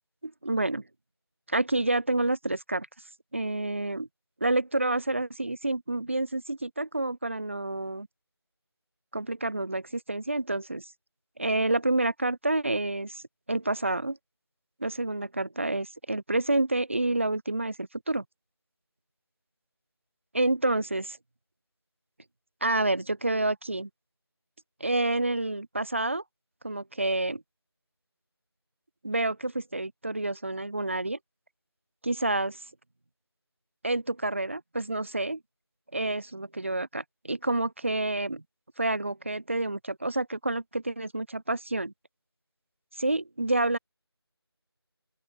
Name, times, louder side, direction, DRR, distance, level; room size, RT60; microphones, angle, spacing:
voice 1, 0.2-0.8 1.5-2.9 3.3-4.1 4.4-8.1 9.1-10.9 11.4-13.2 13.5-14.2 14.8-18.2 20.3-21.2 22.6-23.9 24.8-26.2 26.6-27.4 29.0-31.2 32.0-32.6 33.8-35.4 35.9-38.4 38.8-41.9 43.0-43.8, right 2 dB, 30° right, 0.8 m, -28 dB
open air
figure-of-eight pair, 175°, 14 cm